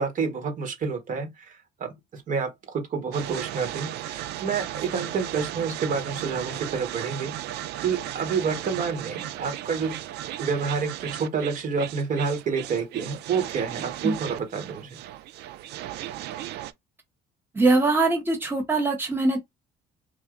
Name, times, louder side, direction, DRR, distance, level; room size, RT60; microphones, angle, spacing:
voice 1, 0.0-10.0 10.4-15.0, right 5 dB, 50° right, 1.5 m, -29 dB
sound 1, 3.1-16.7, right 13 dB, 80° right, 0.5 m, -36 dB
voice 2, 17.5-19.4, right 3 dB, 10° right, 1.1 m, -22 dB
3.5 x 2.5 x 3.8 m
cardioid pair, 110°, 17 cm